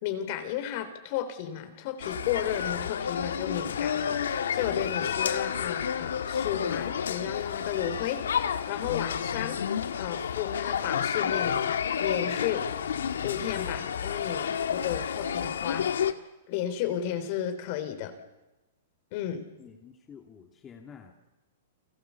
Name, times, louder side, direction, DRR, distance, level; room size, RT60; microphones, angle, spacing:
voice 1, 0.0-9.6 9.9-11.7 12.0-12.6 13.2-16.1 16.5-18.2 19.1-19.5, left 10 dB, 50° left, 9 dB, 3.6 m, -33 dB
funfair France ambiance, 2.0-16.1, left 8 dB, 90° left, 1.5 m, -30 dB
voice 2, 19.6-21.1, left 7 dB, 20° left, 2 dB, 2.5 m, -49 dB
30.0 x 22.5 x 7.2 m, 1.0 s
hypercardioid pair, 140°, 0 cm